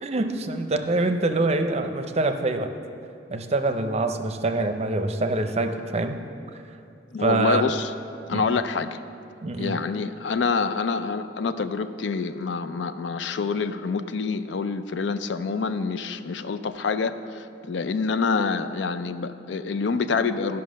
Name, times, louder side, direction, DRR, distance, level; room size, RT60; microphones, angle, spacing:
voice 1, 0.0-2.7 3.3-6.2 6.5-6.6 7.2-7.6 8.3-8.4 9.4-9.8, right 2 dB, 35° right, 7 dB, 0.6 m, -25 dB
voice 2, 7.1-7.9 8.3-9.0 9.6-20.6, left 4 dB, 85° left, 11 dB, 0.4 m, -27 dB
11.0 x 5.6 x 6.3 m, 2.6 s
head